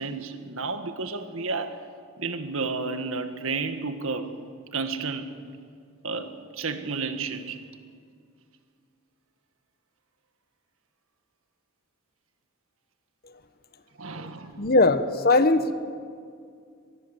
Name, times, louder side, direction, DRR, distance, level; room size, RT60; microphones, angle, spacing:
voice 1, 0.0-1.8 2.2-4.4 4.7-5.4 6.0-7.6 14.0-14.6, right 4 dB, 70° right, 1.8 m, -31 dB
voice 2, 14.6-15.7, left 2 dB, 45° left, 1.2 m, -20 dB
24.0 x 22.0 x 8.0 m
head